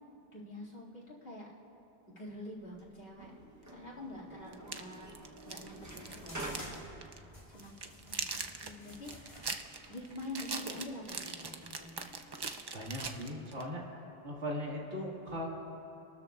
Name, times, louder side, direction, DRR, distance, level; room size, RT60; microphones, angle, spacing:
voice 1, 0.3-1.5 2.2-3.3 3.6-5.1 5.4-7.0 7.5-9.6 9.9-12.1, left 1 dB, 60° left, -4 dB, 2.6 m, -46 dB
sound 1, 2.5-13.3, right 2 dB, 15° right, 0.9 m, -51 dB
sound 2, 3.7-3.8 4.5-6.7 7.0-7.2 7.6-13.7, right 4 dB, 45° right, 0.3 m, -41 dB
sound 3, 5.8-10.9, left 1 dB, 30° left, 2.0 m, -53 dB
voice 2, 12.7-13.8 14.2-15.5, equal, 90° right, -2 dB, 2.2 m, -38 dB
26.0 x 13.0 x 2.4 m, 3.0 s
omnidirectional pair, 1.1 m